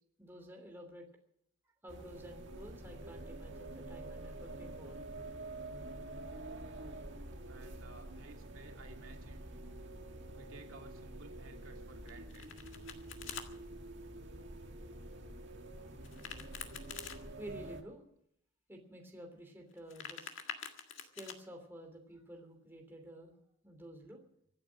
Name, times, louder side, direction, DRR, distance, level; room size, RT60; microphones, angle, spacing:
voice 1, 0.2-1.1 1.8-5.0 17.4-18.0 18.7-20.3 21.1-23.4 23.6-24.2, equal, 10° right, 2 dB, 3.0 m, -51 dB
sound 1, 1.9-17.8, right 2 dB, 55° right, 2.0 m, -47 dB
voice 2, 7.5-9.5 10.3-12.5, right 3 dB, 75° right, 2 dB, 2.5 m, -56 dB
Domestic sounds home sounds, 12.1-13.5 16.0-17.2 19.7-21.4, left 7 dB, 65° left, 1.8 m, -46 dB
25.0 x 8.6 x 6.3 m, 0.70 s
head